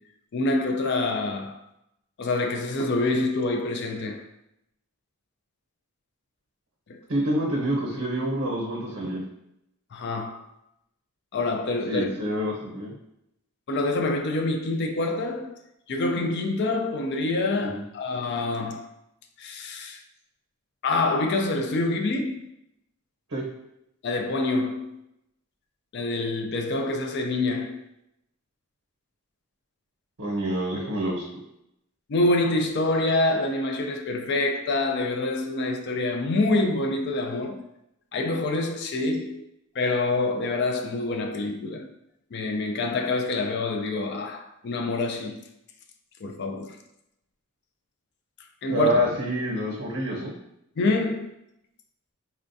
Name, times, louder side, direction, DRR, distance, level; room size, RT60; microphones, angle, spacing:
voice 1, 0.3-1.6 2.2-4.3 6.9-7.0 9.9-10.5 11.3-12.1 13.7-15.5 15.9-18.9 19.4-20.0 20.8-22.5 24.0-25.0 25.9-27.8 32.1-37.6 38.1-39.4 39.8-41.9 42.3-45.4 46.2-46.8 48.6-48.9 50.8-51.3, left 2 dB, 50° left, 0.4 m, -26 dB
voice 2, 7.1-9.2 11.9-12.9 17.6-17.8 23.3-23.4 30.2-31.2 48.7-50.3, right 1 dB, 60° right, 0.7 m, -27 dB
4.2 x 2.3 x 2.6 m
head